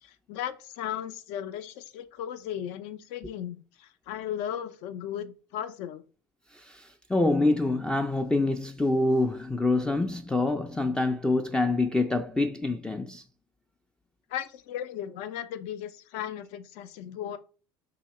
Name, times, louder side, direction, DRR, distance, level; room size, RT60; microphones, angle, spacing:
voice 1, 0.0-6.0 14.3-17.4, left 10 dB, 65° left, 0.5 m, -36 dB
voice 2, 6.5-13.2, left 2 dB, 5° left, 0.3 m, -26 dB
2.8 x 2.8 x 4.1 m
hypercardioid pair, 90°, 12 cm